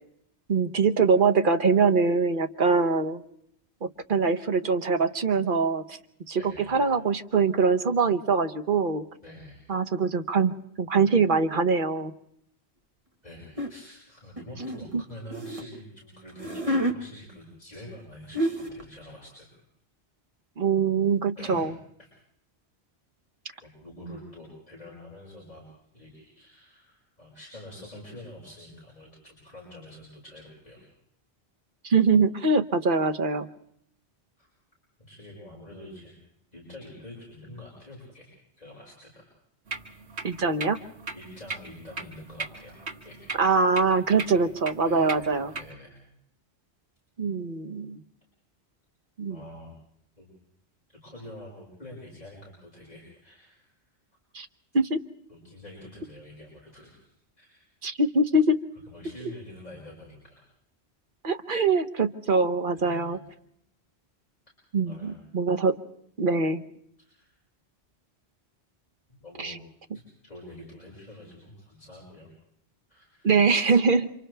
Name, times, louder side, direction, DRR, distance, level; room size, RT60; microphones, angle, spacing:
voice 1, 0.5-3.2 3.8-6.0 6.3-6.4 6.7-9.0 9.7-12.1 20.6-21.7 31.8-33.5 40.2-40.8 43.4-45.5 47.2-48.0 49.2-49.4 54.3-54.5 54.7-55.0 57.8-58.6 61.2-63.2 64.7-65.8 66.2-66.6 69.4-69.6 73.2-74.1, right 4 dB, 55° right, 8 dB, 1.2 m, -23 dB
voice 2, 6.3-6.8 9.2-9.7 13.2-19.6 21.4-21.7 22.0-22.1 23.6-25.6 25.9-30.8 34.4-34.5 35.1-36.2 36.5-38.3 38.6-39.3 41.1-43.4 44.8-46.0 49.3-49.7 50.2-50.3 50.9-53.7 55.3-57.7 58.9-60.4 62.7-63.2 64.9-65.2 67.0-67.3 69.1-69.6 69.9-72.3 72.9-73.3, left 1 dB, 40° left, -5 dB, 6.5 m, -46 dB
sound 1, 13.6-13.8 14.4-15.6 16.3-17.0 18.0-18.1 18.3-18.8, equal, 30° right, 1.6 m, -28 dB
sound 2, 39.7-45.7, right 3 dB, 80° right, 1.9 m, -39 dB
30.0 x 26.5 x 3.4 m, 0.71 s
omnidirectional pair, 1.1 m